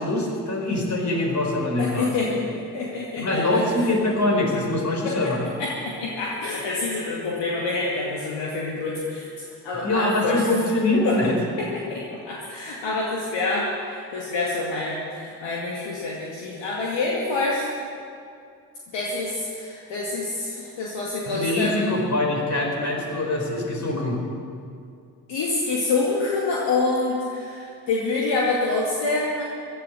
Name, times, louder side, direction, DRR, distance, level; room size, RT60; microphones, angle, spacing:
voice 1, 0.0-2.4 2.9-5.4 9.8-11.4 21.3-24.2, left 2 dB, 35° left, 0 dB, 4.3 m, -24 dB
voice 2, 1.8-2.4 2.7-3.6 5.0-5.3 5.6-9.3 9.6-10.4 11.0-11.2 11.6-17.7 18.9-22.0 25.3-29.4, left 3 dB, 60° left, -4 dB, 2.3 m, -27 dB
15.0 x 11.5 x 7.4 m, 2.4 s
figure-of-eight pair, 45°, 49 cm